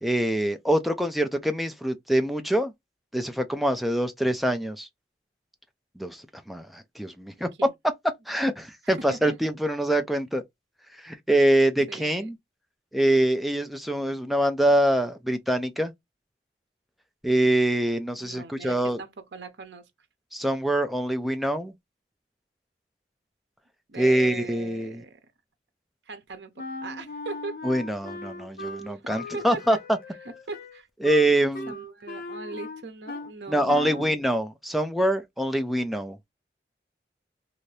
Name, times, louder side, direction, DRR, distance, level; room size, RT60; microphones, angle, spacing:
voice 1, 0.0-2.7 3.1-4.9 6.0-7.5 8.3-10.4 11.0-12.4 12.9-15.9 17.2-19.0 20.3-21.7 24.0-25.0 27.6-29.8 31.0-31.7 33.5-36.2, right 1 dB, ahead, 0.4 m, -24 dB
voice 2, 8.8-9.3 11.9-12.3 18.2-19.9 23.9-25.2 26.1-27.6 28.9-29.8 30.5-30.9 31.7-34.2, right 4 dB, 85° right, 0.7 m, -40 dB
Wind instrument woodwind instrument, 26.6-33.4 33.7-34.1, left 2 dB, 50° left, 0.6 m, -39 dB
2.7 x 2.6 x 3.2 m
head